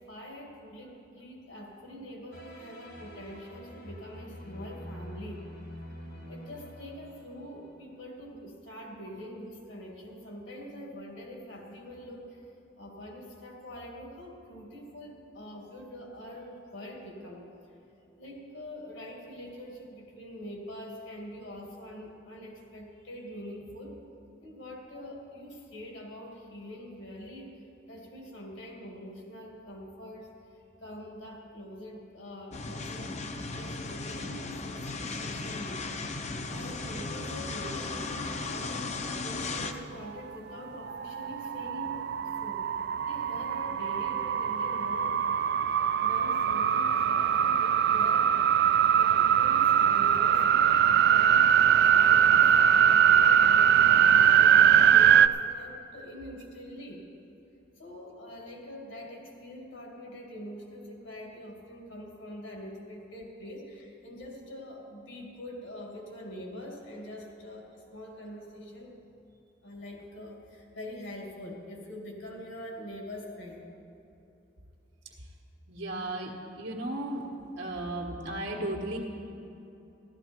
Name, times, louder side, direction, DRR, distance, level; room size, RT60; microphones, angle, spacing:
voice 1, 0.0-5.5 6.3-12.4 12.8-17.5 18.2-24.0 24.4-27.5 27.9-30.3 30.8-35.8 36.5-38.9 39.2-42.6 43.0-45.4 45.7-48.3 48.9-57.0 57.8-69.0 69.6-73.7, equal, 75° left, 0 dB, 2.4 m, -44 dB
sound 1, 2.3-8.1, left 1 dB, 55° left, 1.6 m, -46 dB
sound 2, 32.5-39.7, left 3 dB, 35° left, 0.6 m, -36 dB
sound 3, 40.8-55.3, right 9 dB, 55° right, 0.3 m, -22 dB
voice 2, 75.7-77.3 77.6-79.0, right 1 dB, 85° right, -3 dB, 1.5 m, -35 dB
15.0 x 12.5 x 4.5 m, 2.9 s
head